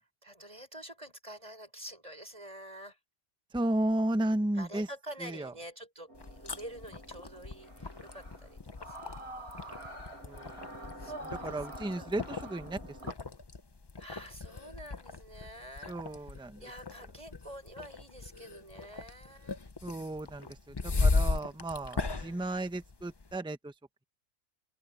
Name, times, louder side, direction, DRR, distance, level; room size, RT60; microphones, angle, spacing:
voice 1, 0.0-3.0 4.5-9.9 10.3-10.5 11.0-11.6 12.0-12.5 14.0-19.6 20.8-21.6 22.2-22.5, right 1 dB, 25° right, 5.9 m, -48 dB
voice 2, 3.5-4.9 5.2-5.5 10.2-10.6 11.2-13.1 15.9-16.6 19.8-23.7, right 1 dB, 5° right, 1.0 m, -34 dB
sound 1, 6.1-23.4, left 3 dB, 25° left, 0.6 m, -37 dB
sound 2, 6.1-13.1, right 1 dB, 50° right, 4.1 m, -47 dB
open air
omnidirectional pair, 1.4 m